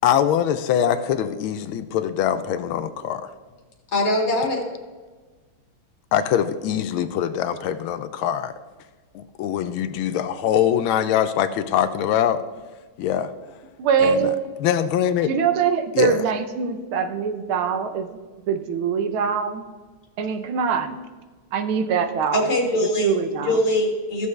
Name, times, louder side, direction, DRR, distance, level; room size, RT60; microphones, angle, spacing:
voice 1, 0.0-3.3 6.1-8.6 9.1-12.4 13.0-13.3 14.0-14.3 14.6-15.3 15.9-16.2, left 10 dB, 80° left, 11 dB, 1.4 m, -23 dB
voice 2, 3.9-4.7 22.3-23.1 23.5-24.3, left 1 dB, 35° left, 0 dB, 2.0 m, -22 dB
voice 3, 13.8-14.3 15.2-18.2 18.5-19.6 20.2-21.0 21.5-22.4 23.0-23.6, right 7 dB, 80° right, 8 dB, 1.7 m, -23 dB
14.5 x 6.9 x 3.2 m, 1.3 s
omnidirectional pair, 2.3 m